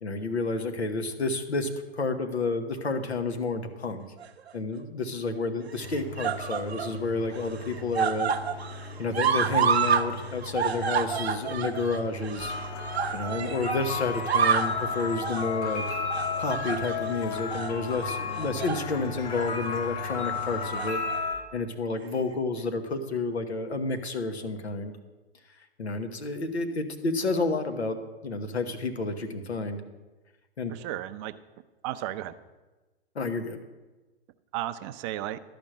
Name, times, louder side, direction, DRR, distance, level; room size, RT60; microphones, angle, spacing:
voice 1, 0.0-4.0 4.5-8.3 9.0-12.5 13.1-15.8 16.4-21.3 21.5-24.9 25.8-28.0 28.2-29.8 30.6-30.7 33.1-33.6, left 3 dB, 85° left, 7 dB, 1.2 m, -30 dB
sound 1, 4.2-4.8 5.7-7.0 7.3-10.1 10.3-13.8 14.1-14.8 15.2-15.5 16.1-17.1 17.5-17.7 18.4-18.9 19.2-19.4 20.5-21.2 22.1-22.2, right 7 dB, 75° right, 0.9 m, -28 dB
sound 2, 5.8-20.8, left 2 dB, 65° left, 3.6 m, -42 dB
sound 3, 12.4-21.3, left 5 dB, 35° left, 1.9 m, -33 dB
voice 2, 30.7-31.3 31.8-32.4 34.5-35.4, right 14 dB, 30° right, 11 dB, 0.4 m, -34 dB
11.5 x 5.2 x 7.5 m, 1.2 s
hypercardioid pair, 115°, 32 cm